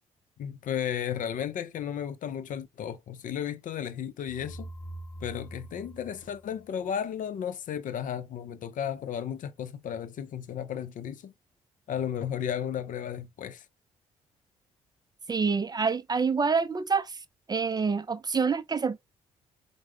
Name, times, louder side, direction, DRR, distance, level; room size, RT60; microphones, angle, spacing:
voice 1, 0.4-4.7 5.2-11.3 11.9-13.7, left 9 dB, 55° left, 0.6 m, -34 dB
sound 1, 4.3-7.2, right 1 dB, 5° left, 1.1 m, -44 dB
voice 2, 15.3-17.1 17.5-19.0, right 5 dB, 25° right, 0.4 m, -27 dB
4.7 x 2.0 x 3.3 m
hypercardioid pair, 45°, 16 cm